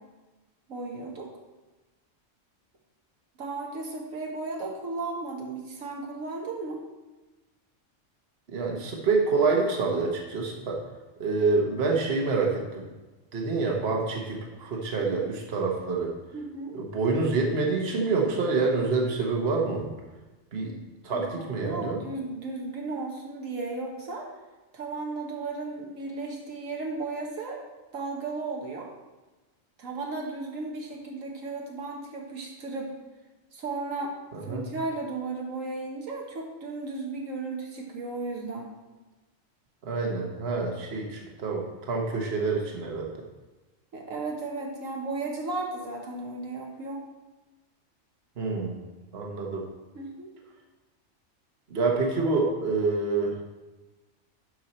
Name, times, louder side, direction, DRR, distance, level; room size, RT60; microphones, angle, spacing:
voice 1, 0.7-1.3 3.4-6.8 15.0-15.3 16.3-16.8 21.1-24.3 24.7-27.6 27.9-28.9 29.8-32.9 33.5-34.2 34.4-38.7 43.9-47.1 49.9-50.3, right 3 dB, 80° right, 0 dB, 1.6 m, -35 dB
voice 2, 8.5-10.8 11.2-12.8 13.3-16.1 16.7-19.9 20.5-20.8 21.0-22.0 34.5-34.6 39.8-43.1 48.4-48.8 49.1-49.7 51.7-53.4, right 4 dB, 50° right, 0 dB, 1.4 m, -27 dB
11.0 x 4.7 x 4.3 m, 1.1 s
omnidirectional pair, 1.4 m